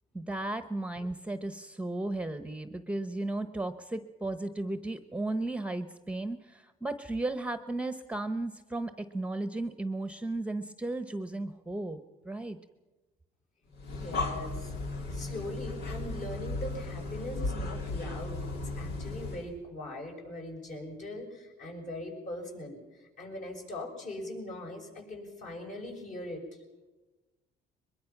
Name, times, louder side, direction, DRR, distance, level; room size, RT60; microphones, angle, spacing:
voice 1, 0.1-12.0 12.2-12.6, right 2 dB, 5° right, 10 dB, 1.0 m, -35 dB
Breathing, 13.7-19.5, left 2 dB, 80° left, 2.9 m, -36 dB
voice 2, 13.9-14.7 15.1-26.4, left 1 dB, 45° left, 1 dB, 6.5 m, -41 dB
22.5 x 21.5 x 6.0 m, 1.1 s
cardioid pair, 110°, 17 cm